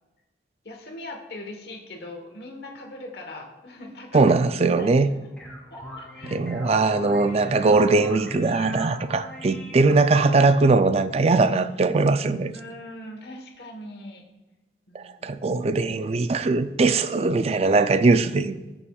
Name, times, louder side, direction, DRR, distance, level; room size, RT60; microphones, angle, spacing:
voice 1, 0.6-4.3 4.7-5.3 5.7-6.4 12.5-14.2 14.9-15.4, left 1 dB, 65° left, 1.2 m, -41 dB
voice 2, 4.1-5.1 6.2-12.5 14.9-18.6, right 3 dB, 35° right, 0.4 m, -20 dB
sound 1, 5.1-10.4, left 1 dB, 5° left, 2.4 m, -40 dB
13.5 x 7.0 x 2.3 m
head